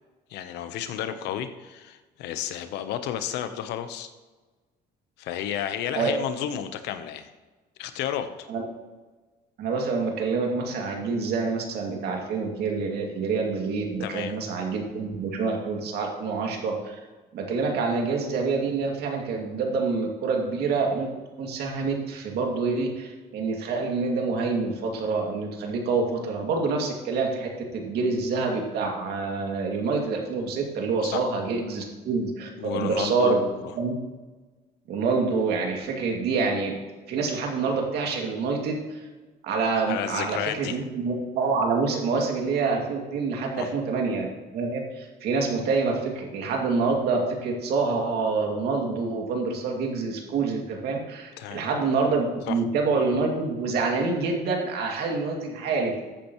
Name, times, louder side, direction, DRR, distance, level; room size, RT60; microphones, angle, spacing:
voice 1, 0.3-4.1 5.2-7.3 7.8-8.5 14.0-14.3 31.0-31.3 32.6-33.7 39.9-40.8 43.6-43.7 51.4-51.7 52.5-52.6, left 10 dB, 85° left, 10 dB, 0.9 m, -32 dB
voice 2, 9.6-17.0 17.3-21.1 21.4-33.4 33.8-34.0 34.9-36.8 37.1-39.0 39.4-44.3 44.5-56.0, right 4 dB, 75° right, 1 dB, 2.4 m, -27 dB
13.5 x 8.7 x 3.1 m, 1.3 s
cardioid pair, 110°, 17 cm